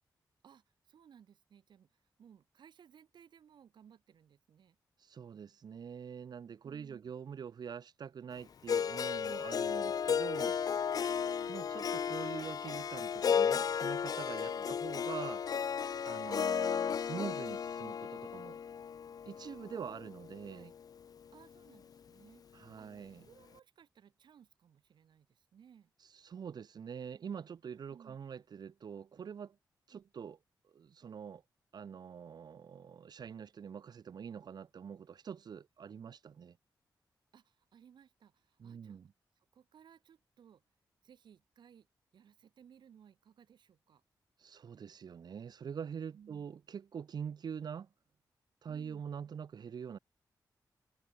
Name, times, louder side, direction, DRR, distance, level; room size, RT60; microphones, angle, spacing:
voice 1, 0.4-4.8 6.6-7.1 11.1-11.6 14.4-14.7 20.5-20.7 21.3-25.9 27.9-28.2 29.9-30.1 37.3-39.0 39.4-40.6 41.0-41.9 42.1-44.0 46.1-46.5 48.7-49.1, right 8 dB, 85° right, 3.3 m, -61 dB
voice 2, 5.0-10.6 11.5-15.4 16.1-18.6 19.3-20.7 22.5-23.2 26.1-29.6 29.9-30.4 30.6-31.4 31.7-36.6 38.6-39.1 44.4-47.9 48.6-50.0, right 7 dB, 65° right, 0.8 m, -45 dB
Harp, 8.7-20.8, left 7 dB, 55° left, 0.4 m, -34 dB
wide cardioid pair, 95°, 8 cm